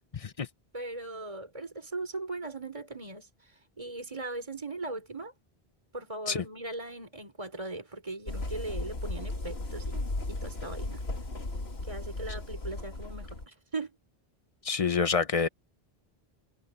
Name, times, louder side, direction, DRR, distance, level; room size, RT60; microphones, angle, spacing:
voice 1, 0.2-0.5 6.3-6.4 14.6-15.5, left 5 dB, 40° left, 0.8 m, -27 dB
voice 2, 0.7-5.3 5.9-11.0 11.8-13.9, right 2 dB, 30° right, 3.6 m, -39 dB
sound 1, 8.3-13.5, left 2 dB, 80° left, 2.8 m, -36 dB
omnidirectional pair, 1.0 m